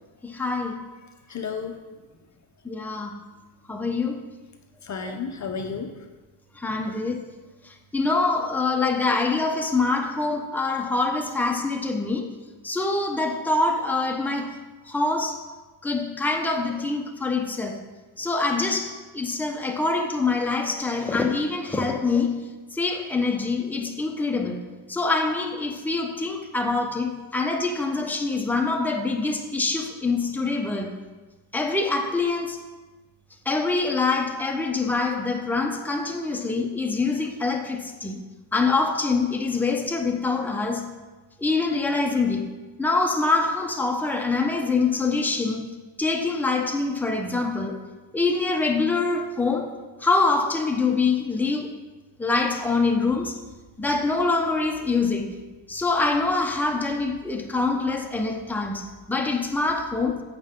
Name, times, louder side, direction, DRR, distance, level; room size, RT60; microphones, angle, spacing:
voice 1, 0.2-0.8 2.6-3.1 3.7-4.2 5.1-5.2 6.6-7.2 7.6-12.3 12.6-14.6 14.9-15.4 15.8-17.8 18.2-22.5 22.7-24.6 24.9-31.0 31.5-32.6 33.4-38.2 38.5-40.9 41.4-42.5 42.8-45.7 46.0-47.8 48.1-49.7 50.0-51.7 52.2-53.4 53.8-55.3 55.7-60.2, left 3 dB, 5° left, 2 dB, 1.0 m, -25 dB
voice 2, 1.3-1.8 4.8-6.1 6.6-6.9, left 5 dB, 35° left, 5 dB, 0.9 m, -33 dB
15.0 x 6.5 x 3.8 m, 1.2 s
cardioid pair, 110°, 49 cm